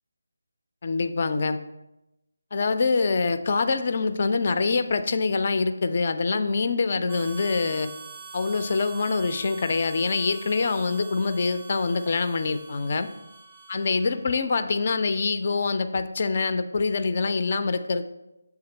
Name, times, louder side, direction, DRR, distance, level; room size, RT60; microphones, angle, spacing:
voice 1, 0.8-1.6 2.5-7.9 8.3-13.1 13.7-18.1, left 4 dB, 40° left, 10 dB, 0.3 m, -25 dB
Harmonica, 7.1-14.4, right 5 dB, 20° right, 0.5 m, -44 dB
7.0 x 3.6 x 4.4 m, 0.94 s
figure-of-eight pair, 155°, 0 cm